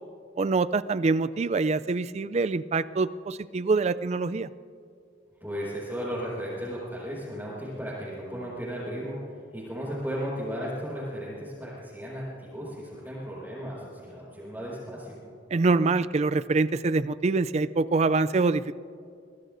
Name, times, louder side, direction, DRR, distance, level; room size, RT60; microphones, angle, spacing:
voice 1, 0.4-4.5 15.5-18.6, right 3 dB, 35° right, 15 dB, 0.3 m, -25 dB
voice 2, 5.4-15.2, equal, 10° right, -10 dB, 5.0 m, -35 dB
24.5 x 20.0 x 2.6 m, 2.5 s
head